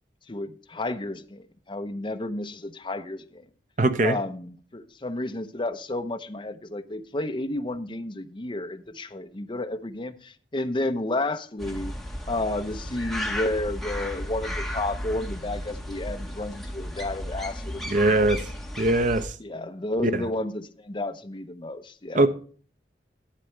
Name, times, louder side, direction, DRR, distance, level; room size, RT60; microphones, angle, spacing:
voice 1, 0.3-3.5 4.0-11.9 12.3-18.3 19.4-22.3, left 2 dB, 30° left, 0.8 m, -31 dB
voice 2, 3.8-4.2 17.9-18.4 18.8-19.3 20.0-20.2 22.1-22.3, right 2 dB, 45° right, 0.7 m, -21 dB
sound 1, 11.6-19.3, left 1 dB, ahead, 1.4 m, -34 dB
11.5 x 9.1 x 3.2 m
head